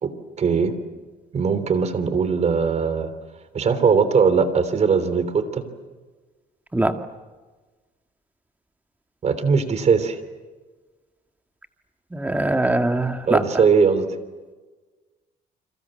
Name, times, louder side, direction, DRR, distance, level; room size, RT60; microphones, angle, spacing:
voice 1, 0.4-0.7 1.3-3.1 3.5-5.6 9.2-10.1 13.3-14.1, right 5 dB, 40° right, 12 dB, 3.3 m, -20 dB
voice 2, 12.1-13.4, right 2 dB, 10° right, 7 dB, 2.1 m, -21 dB
28.5 x 26.0 x 7.8 m, 1.3 s
cardioid pair, 110°, 17 cm